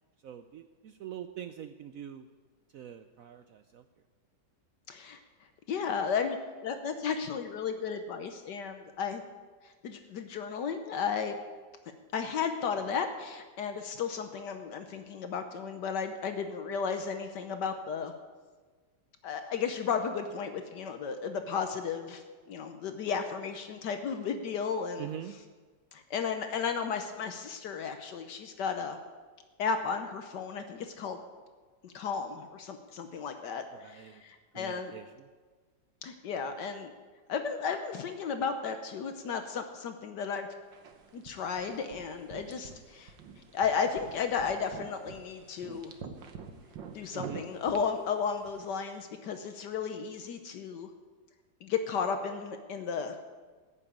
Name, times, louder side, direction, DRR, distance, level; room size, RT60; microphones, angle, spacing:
voice 1, 0.2-2.3 2.7-3.8 25.0-25.3 33.7-34.2 34.5-35.3 47.1-47.5, right 10 dB, 75° right, 9 dB, 0.8 m, -43 dB
voice 2, 4.9-5.2 5.7-9.2 9.8-11.3 12.1-18.1 19.2-25.0 25.9-29.0 29.6-31.2 31.8-34.9 36.0-36.9 37.3-40.5 41.1-43.1 43.5-45.9 46.9-50.9 51.6-53.2, left 6 dB, 70° left, 7 dB, 1.4 m, -34 dB
sound 1, 40.7-48.9, right 6 dB, 90° right, 1.8 m, -48 dB
15.0 x 6.9 x 8.7 m, 1.4 s
omnidirectional pair, 2.0 m